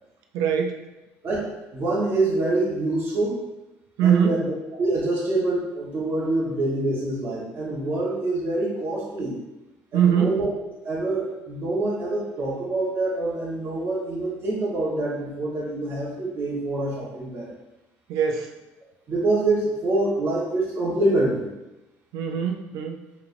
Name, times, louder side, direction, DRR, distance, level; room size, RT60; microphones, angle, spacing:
voice 1, 0.3-0.8 4.0-4.4 9.9-10.4 18.1-18.5 22.1-23.0, right 8 dB, 80° right, 4 dB, 0.4 m, -22 dB
voice 2, 1.2-3.4 4.0-9.3 9.9-10.5 10.8-17.5 19.1-21.5, right 2 dB, 40° right, -8 dB, 1.3 m, -25 dB
4.8 x 3.4 x 2.6 m, 1.0 s
cardioid pair, 110°, 6 cm